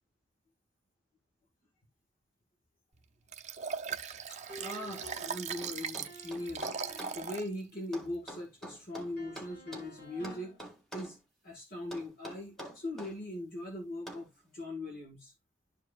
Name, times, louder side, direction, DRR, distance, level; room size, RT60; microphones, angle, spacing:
Liquid, 3.3-7.5 8.0-8.1, right 6 dB, 35° right, 0.6 m, -39 dB
voice 1, 4.3-11.2 11.4-14.3 14.5-15.3, left 1 dB, 50° left, 1.8 m, -40 dB
sound 1, 4.5-7.5 9.2-10.6, equal, 65° left, 5.2 m, -50 dB
sound 2, 5.6-7.2 7.9-9.9 10.2-11.2 11.9-13.2 14.1-14.3, right 1 dB, ahead, 1.9 m, -46 dB
12.0 x 4.7 x 2.4 m
head